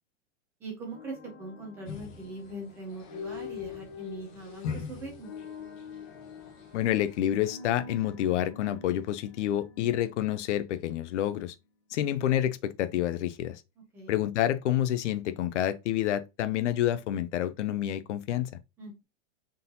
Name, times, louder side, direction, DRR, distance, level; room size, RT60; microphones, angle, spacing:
voice 1, 0.6-5.3 13.9-14.1 18.8-19.0, right 2 dB, 5° right, 0.4 m, -41 dB
sound 1, 0.9-10.9, left 7 dB, 50° left, 1.1 m, -46 dB
sound 2, 1.8-7.2, left 6 dB, 30° left, 0.8 m, -43 dB
voice 2, 6.7-11.5 11.9-13.6 14.1-18.5, left 12 dB, 70° left, 0.7 m, -28 dB
4.1 x 3.8 x 2.7 m
supercardioid pair, 175°, 36 cm